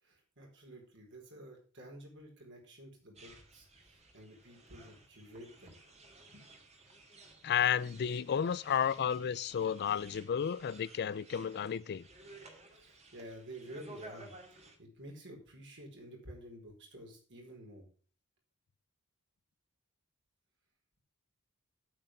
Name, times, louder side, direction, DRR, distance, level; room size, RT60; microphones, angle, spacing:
voice 1, 0.0-5.8 6.3-6.4 12.7-17.9, right 1 dB, 55° right, 4.6 m, -51 dB
sound 1, 3.1-14.8, right 2 dB, 30° right, 2.2 m, -56 dB
voice 2, 7.4-12.1, left 8 dB, 50° left, 0.4 m, -32 dB
8.9 x 8.1 x 6.3 m
head